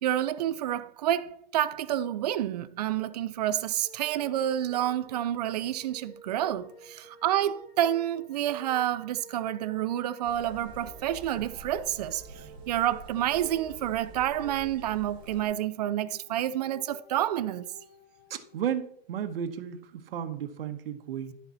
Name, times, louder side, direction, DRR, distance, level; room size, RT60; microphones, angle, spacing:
voice 1, 0.0-17.7, right 12 dB, 45° right, 0.5 m, -29 dB
sound 1, 3.8-19.0, right 1 dB, 55° left, 2.4 m, -52 dB
sound 2, 10.2-15.4, right 2 dB, 15° right, 1.3 m, -47 dB
voice 2, 18.3-21.3, right 9 dB, 70° right, 1.2 m, -34 dB
11.5 x 7.0 x 4.1 m
supercardioid pair, 170°, 30 cm